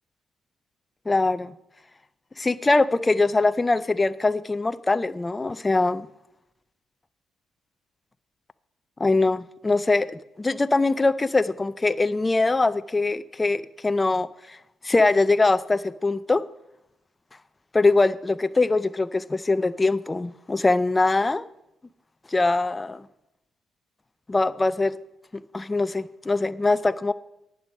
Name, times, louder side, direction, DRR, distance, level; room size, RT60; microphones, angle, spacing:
voice 1, 1.1-1.5 2.4-6.1 9.0-10.1 10.4-14.6 14.8-16.4 17.7-21.4 22.3-23.0 24.3-25.0 25.5-27.1, left 3 dB, 20° left, 13 dB, 0.4 m, -22 dB
10.5 x 9.8 x 5.2 m, 0.87 s
cardioid pair, 90°, 0 cm